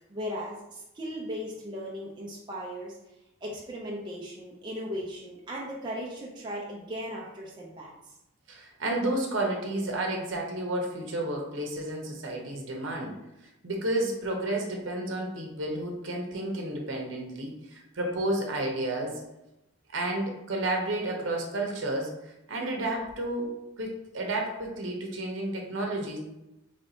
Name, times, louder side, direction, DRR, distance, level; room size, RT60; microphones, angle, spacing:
voice 1, 0.1-3.0 3.4-7.9, equal, 20° right, -3 dB, 0.5 m, -37 dB
voice 2, 8.5-13.1 13.6-19.2 19.9-26.2, right 1 dB, 65° right, 0 dB, 0.8 m, -31 dB
3.2 x 2.6 x 4.2 m, 0.91 s
head